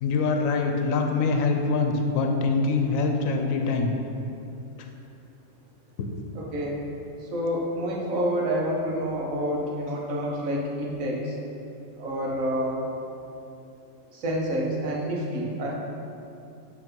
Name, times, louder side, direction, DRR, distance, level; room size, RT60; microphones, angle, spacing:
voice 1, 0.0-3.9 6.0-6.1, left 4 dB, 90° left, 3 dB, 1.1 m, -24 dB
voice 2, 6.3-6.7 7.3-11.3 12.0-12.8 14.1-15.7, equal, 90° right, -3 dB, 1.5 m, -28 dB
8.3 x 3.4 x 5.2 m, 2.7 s
omnidirectional pair, 1.4 m